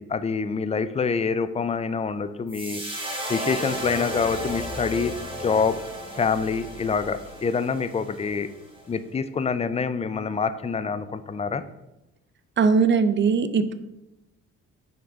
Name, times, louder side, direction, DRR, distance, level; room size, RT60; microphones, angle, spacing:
voice 1, 0.0-2.8 3.3-5.1 5.4-5.8 6.1-8.5 8.9-11.6, left 5 dB, 20° left, 12 dB, 0.4 m, -26 dB
sound 1, 2.5-8.8, equal, 15° right, 1.5 m, -34 dB
voice 2, 12.6-13.7, right 5 dB, 40° right, 12 dB, 0.5 m, -20 dB
9.3 x 3.7 x 3.5 m, 0.94 s
cardioid pair, 90°, 30 cm